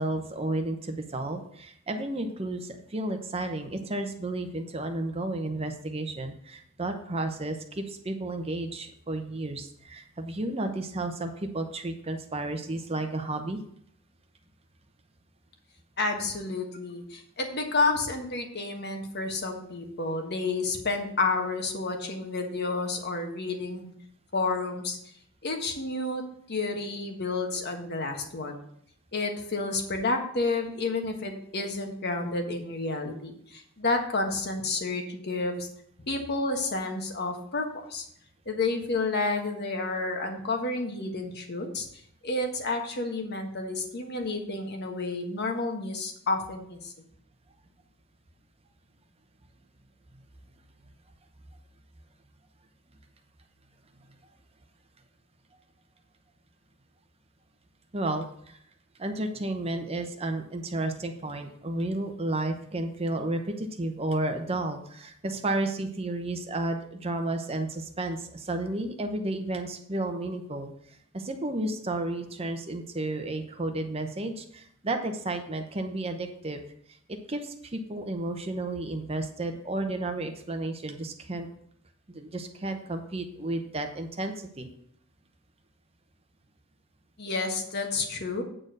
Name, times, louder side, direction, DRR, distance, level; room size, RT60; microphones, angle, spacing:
voice 1, 0.0-13.6 57.9-58.6 59.0-76.6 77.1-81.5 82.1-84.7, right 2 dB, 25° right, 6 dB, 0.8 m, -32 dB
voice 2, 16.0-23.9 24.3-25.0 25.4-26.2 26.5-28.5 29.1-35.7 36.1-37.6 37.9-38.0 38.4-41.9 42.2-46.9 87.2-88.4, left 3 dB, 50° left, 3 dB, 1.4 m, -30 dB
8.8 x 4.3 x 6.5 m, 0.68 s
head